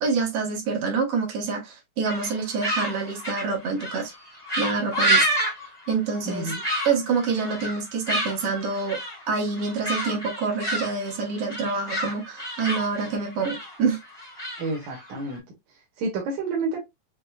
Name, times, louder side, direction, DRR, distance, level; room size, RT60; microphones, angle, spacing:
voice 1, 0.0-4.1 4.6-5.3 5.9-6.5 6.9-9.0 9.3-14.0, right 4 dB, 65° right, 1.7 m, -27 dB
sound 1, 2.0-15.4, right 1 dB, 15° left, 0.8 m, -29 dB
voice 2, 6.2-6.6 14.6-15.4 15.7-16.8, right 3 dB, 90° right, 2.5 m, -30 dB
6.2 x 2.2 x 2.2 m
omnidirectional pair, 3.3 m